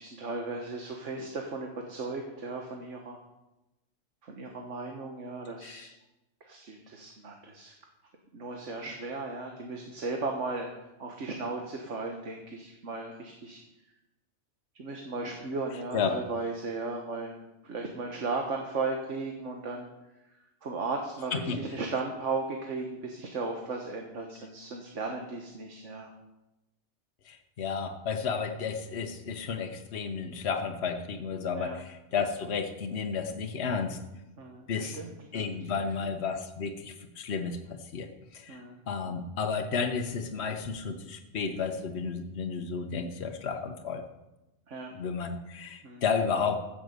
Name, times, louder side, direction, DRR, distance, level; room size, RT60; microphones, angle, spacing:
voice 1, 0.0-3.2 4.2-5.9 6.4-7.7 8.3-10.7 11.0-13.6 14.8-19.9 20.6-26.1 31.5-31.8 34.4-35.5 35.8-35.9 38.5-38.8 44.7-44.9 45.8-46.0, right 3 dB, 85° right, 2 dB, 1.7 m, -36 dB
voice 2, 27.3-34.0 34.7-35.0 35.3-37.6 37.9-38.1 38.3-38.6 38.9-44.0 44.9-46.6, left 5 dB, 65° left, 5 dB, 1.3 m, -32 dB
14.0 x 7.0 x 8.0 m, 0.98 s
omnidirectional pair, 1.2 m